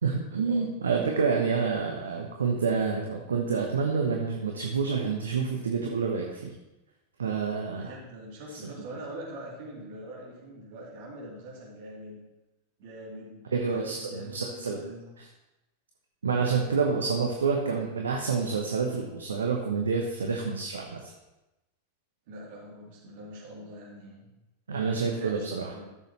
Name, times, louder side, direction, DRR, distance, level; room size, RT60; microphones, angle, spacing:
voice 1, 0.0-6.5 7.2-7.9 8.6-8.7 13.5-14.8 15.2-15.3 16.2-21.1 24.7-25.7, right 5 dB, 70° right, 1 dB, 1.0 m, -28 dB
voice 2, 7.6-12.2 12.8-15.1 22.3-24.3 25.0-25.9, right 1 dB, 50° right, -4 dB, 3.0 m, -43 dB
14.0 x 6.8 x 3.1 m, 1.0 s
figure-of-eight pair, 90°, 0 cm